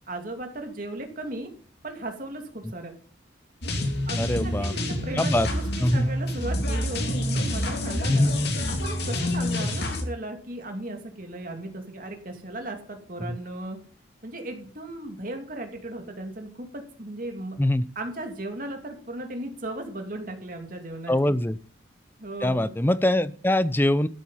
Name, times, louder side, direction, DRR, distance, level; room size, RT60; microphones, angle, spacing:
voice 1, 0.1-1.5 1.8-2.9 4.1-8.3 8.7-13.8 14.2-17.6 18.0-21.4 22.2-22.7, right 1 dB, 45° right, 4 dB, 2.7 m, -36 dB
sound 1, 3.6-10.0, left 1 dB, 55° left, 2.8 m, -27 dB
voice 2, 4.2-4.7 5.1-5.5 5.8-6.1 8.1-8.4 13.2-13.4 17.6-17.8 21.1-21.6 22.4-24.1, left 1 dB, 10° left, 16 dB, 0.5 m, -23 dB
13.0 x 8.6 x 5.7 m, 0.43 s
head